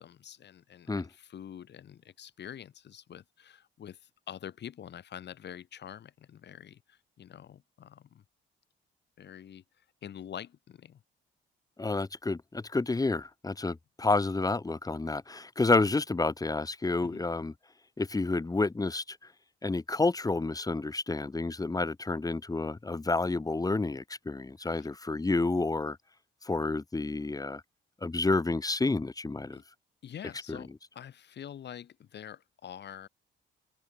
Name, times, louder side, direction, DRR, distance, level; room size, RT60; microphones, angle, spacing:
voice 1, 0.0-8.2 9.2-9.6 10.0-11.0 17.0-17.2 24.6-24.9 29.5-29.6 30.0-33.1, left 9 dB, 60° left, 3.3 m, -46 dB
voice 2, 11.8-17.5 18.0-19.2 19.6-26.0 26.4-27.6 28.0-29.6 30.5-30.6, left 3 dB, 20° left, 1.6 m, -29 dB
open air
cardioid pair, 90°, 20 cm